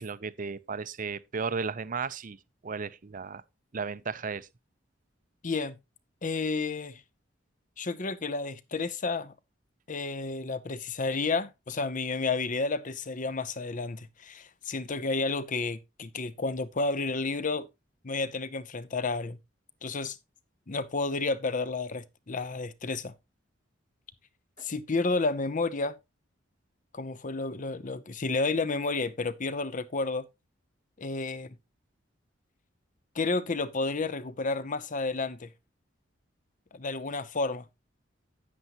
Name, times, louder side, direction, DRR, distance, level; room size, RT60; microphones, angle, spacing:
voice 1, 0.0-2.4 2.6-3.4 3.7-4.5 24.6-24.7, right 5 dB, 45° right, 0.6 m, -34 dB
voice 2, 5.4-5.8 6.2-7.0 7.8-9.3 9.9-17.7 18.0-19.4 19.8-20.2 20.7-23.1 24.6-25.9 26.9-30.2 31.0-31.5 33.1-35.5 36.7-37.6, left 3 dB, 45° left, 0.8 m, -31 dB
9.7 x 9.4 x 3.0 m
head